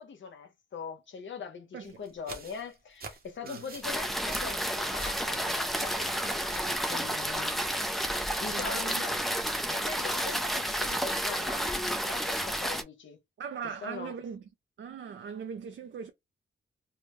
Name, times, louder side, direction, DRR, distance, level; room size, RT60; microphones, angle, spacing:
voice 1, 0.0-7.5 8.1-9.2 9.7-13.2 13.8-14.1, left 5 dB, 65° left, 0.8 m, -42 dB
sound 1, 1.8-5.4 5.7-6.8, right 4 dB, 50° right, 0.8 m, -47 dB
sound 2, 3.8-12.8, equal, ahead, 0.4 m, -31 dB
voice 2, 8.5-9.0 13.4-14.4 14.8-16.1, right 7 dB, 65° right, 0.4 m, -39 dB
3.3 x 2.1 x 3.0 m
wide cardioid pair, 140°, 21 cm